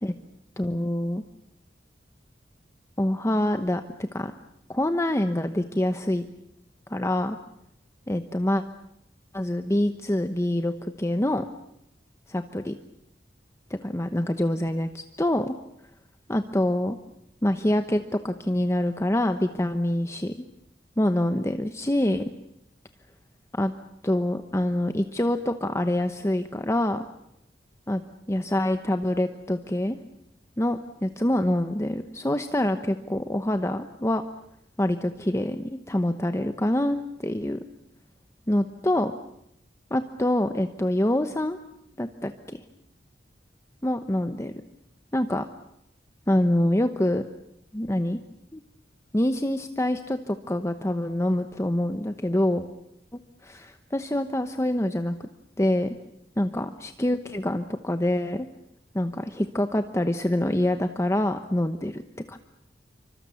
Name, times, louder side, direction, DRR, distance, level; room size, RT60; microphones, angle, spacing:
voice 1, 0.6-1.2 3.0-4.3 4.7-6.2 6.9-7.4 8.1-8.6 9.3-11.4 12.3-12.7 13.8-15.5 16.3-17.0 17.4-20.4 21.0-22.3 23.5-23.7 24.0-27.1 27.9-28.0 28.3-30.0 30.6-34.2 34.8-37.6 38.5-39.1 39.9-41.6 42.0-42.6 43.8-44.5 45.1-45.5 46.3-47.2 47.7-48.2 48.5-48.6 49.1-52.7 53.4-55.2 55.6-55.9 56.4-58.5 58.9-62.0 62.3-62.4, left 1 dB, 15° left, 8 dB, 0.9 m, -25 dB
27.0 x 24.5 x 7.0 m, 0.77 s
head